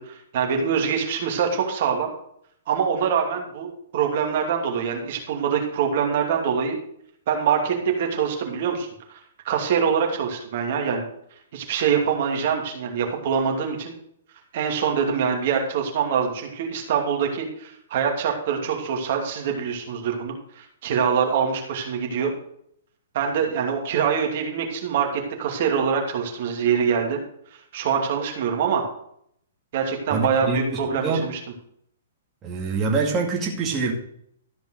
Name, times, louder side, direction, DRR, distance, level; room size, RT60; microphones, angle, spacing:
voice 1, 0.0-2.1 2.7-6.8 7.3-9.2 9.4-11.1 11.5-13.9 14.5-22.3 23.1-27.2 27.7-28.8 29.7-31.4, right 7 dB, 55° right, 2 dB, 2.6 m, -24 dB
voice 2, 30.1-31.2 32.4-33.9, right 4 dB, 25° right, -2 dB, 2.4 m, -25 dB
13.5 x 5.3 x 6.4 m, 0.68 s
hypercardioid pair, 135°, 0 cm